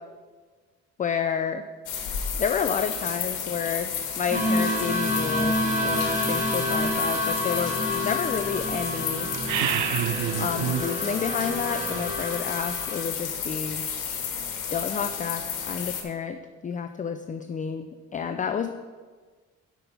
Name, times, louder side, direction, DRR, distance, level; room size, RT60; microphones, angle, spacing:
voice 1, 1.0-1.6 2.4-9.3 10.4-13.8 14.7-16.4 16.6-18.7, left 7 dB, 25° left, 8 dB, 0.4 m, -30 dB
sound 1, 1.9-16.0, left 7 dB, 90° left, 1.3 m, -32 dB
sound 2, 4.3-13.0, left 1 dB, 25° right, 1.8 m, -28 dB
sound 3, 9.3-10.9, right 11 dB, 75° right, 0.5 m, -27 dB
6.0 x 5.3 x 6.8 m, 1.4 s
cardioid pair, 90°, 30 cm